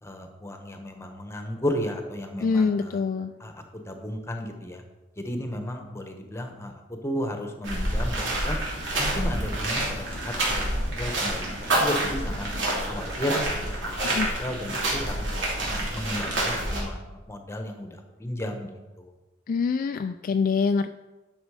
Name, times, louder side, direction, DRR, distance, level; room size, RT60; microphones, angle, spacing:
voice 1, 0.0-3.0 3.4-4.8 5.2-8.6 9.0-12.5 12.9-17.0 17.3-18.7 19.0-19.1, equal, 15° left, 5 dB, 1.1 m, -34 dB
voice 2, 2.4-3.3 14.0-14.3 19.5-20.9, left 5 dB, 45° left, 8 dB, 0.3 m, -25 dB
sound 1, 7.6-16.8, right 1 dB, 75° right, 3.0 m, -28 dB
10.0 x 6.3 x 4.8 m, 1.1 s
head